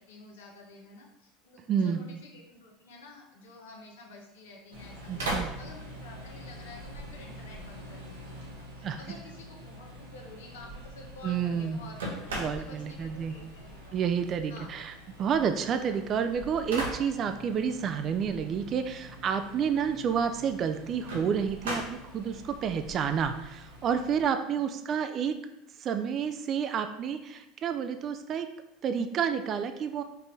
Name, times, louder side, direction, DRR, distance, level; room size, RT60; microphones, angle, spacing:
voice 1, 0.0-12.3 12.6-14.0 14.5-14.7 15.8-16.0 24.4-24.6, left 2 dB, 80° left, 1 dB, 0.9 m, -50 dB
voice 2, 1.7-2.0 5.1-5.5 8.8-9.0 11.2-11.8 12.4-13.3 13.9-25.3 25.8-28.5 28.8-30.0, right 7 dB, 45° right, 8 dB, 0.3 m, -30 dB
sound 1, 4.7-24.3, right 1 dB, 85° right, 0.9 m, -41 dB
4.4 x 2.5 x 3.4 m, 0.84 s
hypercardioid pair, 85°, 0 cm